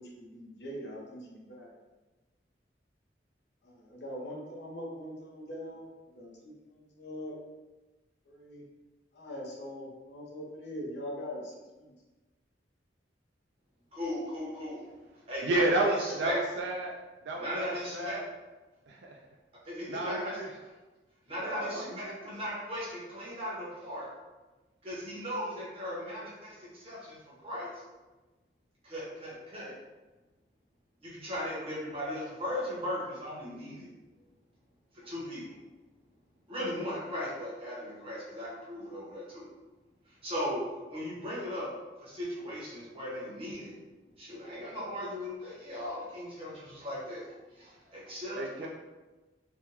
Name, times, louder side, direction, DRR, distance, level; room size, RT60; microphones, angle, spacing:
voice 1, 0.0-1.7 3.6-5.9 6.1-7.4 8.3-8.6 9.1-11.9, equal, 75° left, -3 dB, 0.8 m, -42 dB
voice 2, 13.9-14.8 15.3-16.4 17.4-18.2 19.6-20.3 21.3-24.1 24.8-27.2 27.4-27.7 28.8-29.7 31.0-33.9 35.0-35.5 36.5-39.4 40.2-41.7 42.0-43.7 44.2-47.2 47.6-48.7, equal, 35° right, -7 dB, 1.1 m, -37 dB
voice 3, 15.4-16.9 17.3-18.2 18.9-19.2 19.9-20.5 21.4-22.3 48.4-48.7, right 2 dB, 80° right, 0 dB, 0.3 m, -31 dB
3.4 x 2.2 x 2.9 m, 1.2 s
head